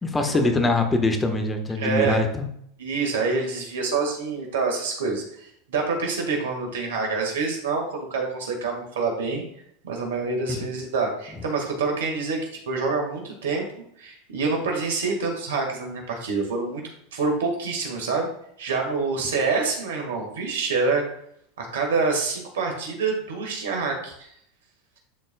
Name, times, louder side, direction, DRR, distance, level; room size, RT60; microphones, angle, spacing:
voice 1, 0.0-2.5 10.5-10.7, left 2 dB, 15° left, 5 dB, 1.1 m, -23 dB
voice 2, 1.8-2.2 2.8-9.4 9.8-12.4 12.7-13.7 14.0-16.8 17.1-18.3 18.6-21.0 21.6-24.3, right 4 dB, 75° right, 2 dB, 1.6 m, -26 dB
10.5 x 4.2 x 2.2 m, 0.70 s
hypercardioid pair, 85°, 0 cm